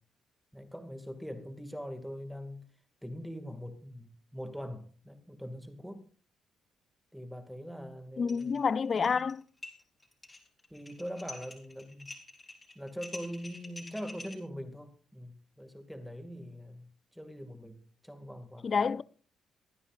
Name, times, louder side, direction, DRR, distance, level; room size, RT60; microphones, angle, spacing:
voice 1, 0.5-2.6 3.0-6.1 7.1-8.6 8.9-9.2 10.7-12.1 12.7-16.9 17.1-18.8, equal, ahead, 2.4 m, -42 dB
voice 2, 8.2-9.4 18.6-19.0, left 5 dB, 45° left, 0.5 m, -28 dB
sound 1, 8.3-8.6 8.8-9.3 9.6-14.3, left 2 dB, 20° left, 3.9 m, -47 dB
23.5 x 9.9 x 2.6 m
cardioid pair, 90°, 0 cm